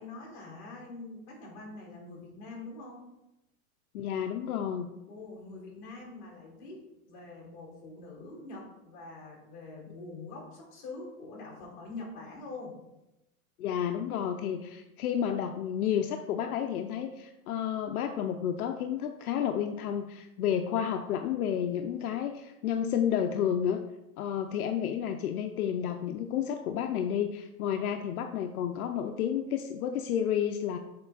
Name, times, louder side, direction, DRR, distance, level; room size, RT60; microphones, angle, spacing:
voice 1, 0.0-3.1 5.1-12.8, left 3 dB, 35° left, -3 dB, 2.3 m, -44 dB
voice 2, 3.9-4.9 13.6-23.8 24.2-30.8, left 9 dB, 75° left, 6 dB, 0.6 m, -31 dB
6.8 x 4.4 x 3.9 m, 0.95 s
supercardioid pair, 175°, 44 cm